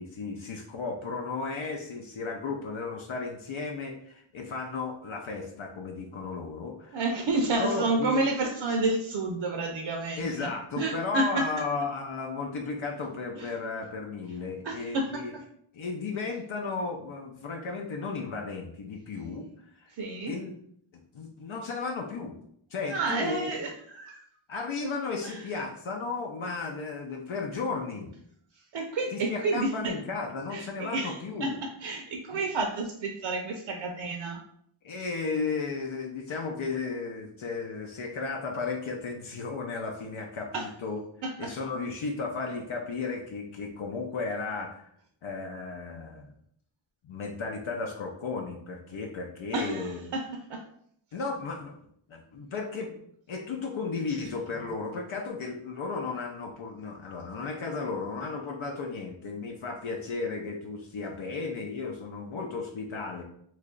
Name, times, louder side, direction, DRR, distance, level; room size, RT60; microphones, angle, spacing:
voice 1, 0.0-7.0 7.6-8.2 10.2-15.3 15.7-19.5 19.7-19.9 20.3-20.5 21.1-22.3 22.7-23.5 24.5-28.1 29.1-31.6 32.3-32.4 34.8-41.0 41.4-44.9 45.2-46.3 47.0-50.0 51.1-51.7 52.1-53.0 53.3-63.2, left 4 dB, 70° left, 1 dB, 0.6 m, -34 dB
voice 2, 6.9-11.5 13.4-13.5 14.6-15.2 19.9-20.3 22.9-24.2 25.2-25.4 28.7-29.9 30.5-31.2 31.4-34.4 40.5-40.6 41.2-41.5 49.5-50.6, right 2 dB, 65° right, 2 dB, 0.6 m, -30 dB
3.1 x 2.4 x 3.7 m, 0.68 s
wide cardioid pair, 110°, 50 cm